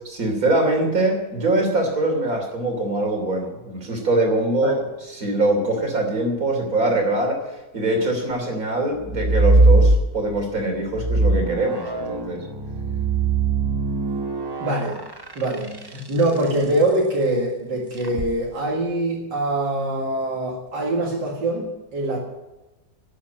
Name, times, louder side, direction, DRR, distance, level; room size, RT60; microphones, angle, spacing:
voice 1, 0.0-4.8 5.1-12.4, right 2 dB, 50° right, 3 dB, 3.5 m, -23 dB
sound 1, 9.0-10.5 10.9-16.4 18.0-18.3, right 2 dB, 20° right, 0.6 m, -21 dB
voice 2, 14.6-15.0 15.4-22.2, right 1 dB, 75° right, -2 dB, 2.7 m, -23 dB
12.0 x 8.6 x 10.0 m, 1.0 s
omnidirectional pair, 2.0 m